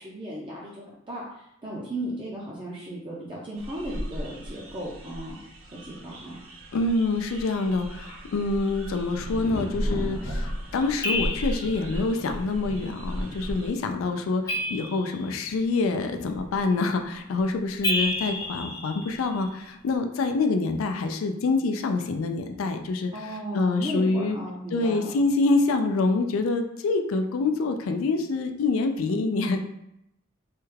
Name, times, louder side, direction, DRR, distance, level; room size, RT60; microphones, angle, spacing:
voice 1, 0.0-5.4 5.7-6.4 23.1-25.0, right 1 dB, 25° right, -5 dB, 0.4 m, -35 dB
sound 1, 3.6-13.7, equal, 85° right, 0.6 m, -35 dB
voice 2, 6.7-23.1 23.5-24.4 24.7-29.6, left 3 dB, 90° left, 6 dB, 0.4 m, -26 dB
Thunder, 9.2-18.8 19.1-19.8, equal, 70° left, 0.9 m, -42 dB
sound 2, 11.0-11.9 14.5-15.5 17.8-19.5, left 1 dB, 15° left, 0.6 m, -30 dB
3.2 x 2.3 x 3.2 m, 0.82 s
head